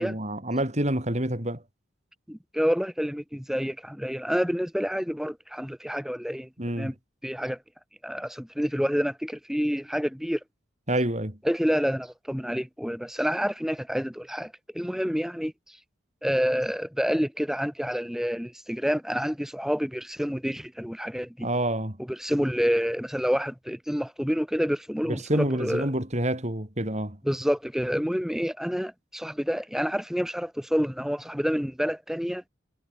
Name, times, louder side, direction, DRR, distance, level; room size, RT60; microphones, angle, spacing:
voice 1, 0.0-1.6 6.6-6.9 10.9-11.4 21.4-22.0 25.1-27.2, right 1 dB, 35° right, 4.7 m, -28 dB
voice 2, 2.3-6.5 6.8-6.9 7.2-7.6 8.0-10.4 11.4-15.8 16.2-21.5 22.1-25.9 27.2-32.4, equal, ahead, 3.9 m, -28 dB
head